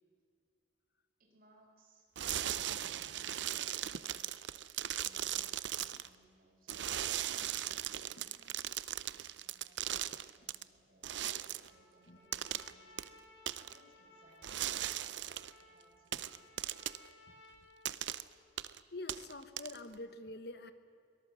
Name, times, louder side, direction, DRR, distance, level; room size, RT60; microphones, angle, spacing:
voice 1, 1.2-2.1 3.1-4.4 5.0-7.0 7.6-8.8 9.4-16.5, right 1 dB, 50° right, 1 dB, 5.2 m, -67 dB
sound 1, 2.2-6.1 6.7-10.6 11.0-11.7 12.3-12.7 13.0-13.1 13.5-13.8 14.4-15.5 16.1-17.1 17.8-18.2 18.6-18.8 19.1-19.9, right 11 dB, 80° right, 0.6 m, -38 dB
voice 2, 2.6-3.2 12.1-12.2 16.1-16.2 18.9-20.7, left 2 dB, 60° left, 11 dB, 1.3 m, -47 dB
Trumpet, 11.6-18.4, left 1 dB, 75° left, 5.9 m, -61 dB
24.0 x 18.0 x 7.6 m, 2.3 s
head